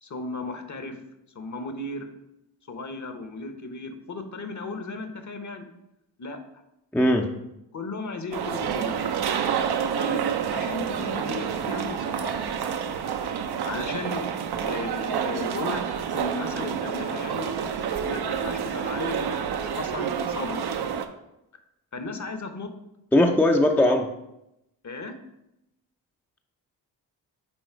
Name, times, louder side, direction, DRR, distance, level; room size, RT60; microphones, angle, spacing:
voice 1, 0.0-1.0 1.3-2.1 2.7-5.7 6.2-6.4 7.7-9.0 9.9-12.3 13.6-14.3 14.6-15.8 16.1-17.5 17.9-20.6 21.9-22.7 24.8-25.1, left 3 dB, 40° left, 7 dB, 1.1 m, -35 dB
voice 2, 6.9-7.3 23.1-24.1, left 1 dB, 5° left, 3 dB, 0.6 m, -19 dB
sound 1, 8.3-21.0, right 7 dB, 55° right, 0.7 m, -28 dB
6.3 x 4.1 x 4.6 m, 0.86 s
supercardioid pair, 50°, 45 cm